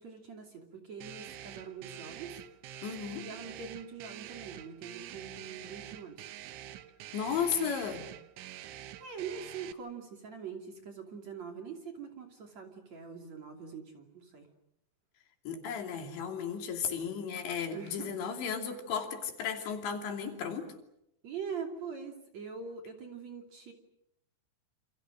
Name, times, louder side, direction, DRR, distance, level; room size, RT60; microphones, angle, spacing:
voice 1, 0.0-2.3 3.2-6.2 9.0-14.5 17.7-18.1 21.2-23.7, right 6 dB, 40° right, 4 dB, 3.5 m, -43 dB
sound 1, 1.0-9.7, right 12 dB, 85° right, 3.7 m, -47 dB
voice 2, 2.8-3.3 7.1-8.1 15.5-20.7, left 7 dB, 75° left, 4 dB, 5.1 m, -34 dB
28.5 x 28.0 x 6.5 m, 0.79 s
omnidirectional pair, 5.4 m